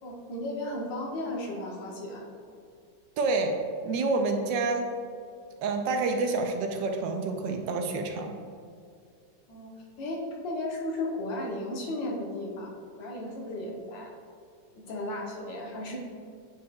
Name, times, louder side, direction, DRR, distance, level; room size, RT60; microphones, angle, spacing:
voice 1, 0.0-2.2 9.5-12.7 13.0-14.1 14.7-16.0, left 1 dB, 75° left, -1 dB, 1.7 m, -35 dB
voice 2, 3.2-3.6 3.8-4.9 5.6-8.4, right 3 dB, 75° right, 4 dB, 1.2 m, -28 dB
9.2 x 4.7 x 2.3 m, 2.3 s
omnidirectional pair, 2.1 m